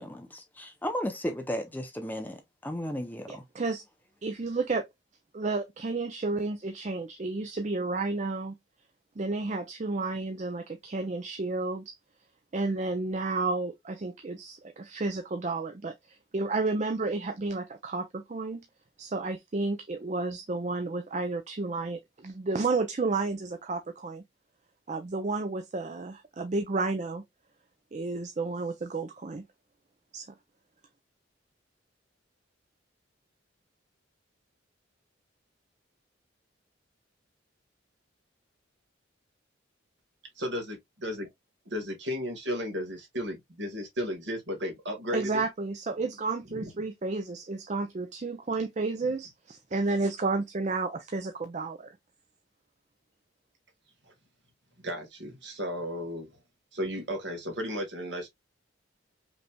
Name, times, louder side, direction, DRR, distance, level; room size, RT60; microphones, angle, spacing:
voice 1, 0.0-3.4, equal, 10° left, 0.6 m, -35 dB
voice 2, 3.3-3.8 4.2-4.9 5.3-8.6 9.2-12.0 12.5-18.7 19.0-24.2 24.9-27.2 27.9-29.5 30.1-30.3 45.1-52.0, right 3 dB, 35° right, 0.4 m, -31 dB
voice 3, 40.4-40.8 41.0-41.3 41.7-45.5 46.5-46.7 54.8-56.3 56.7-58.3, equal, 60° right, 1.7 m, -34 dB
5.1 x 3.2 x 2.2 m
head